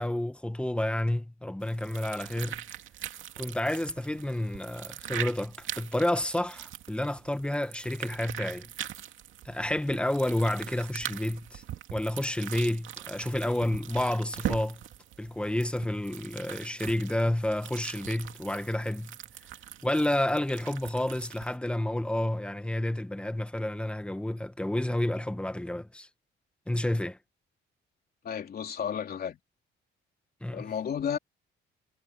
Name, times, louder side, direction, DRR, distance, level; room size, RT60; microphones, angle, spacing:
voice 1, 0.0-2.6 3.4-8.7 9.4-11.6 11.9-14.8 15.2-19.1 19.8-26.1 26.7-27.2 30.4-30.6, left 1 dB, 5° left, 1.6 m, -30 dB
sound 1, 1.6-21.6, right 12 dB, 70° right, 2.5 m, -42 dB
voice 2, 28.2-29.4 30.5-31.2, left 8 dB, 45° left, 3.3 m, -32 dB
cardioid pair, 115°, 21 cm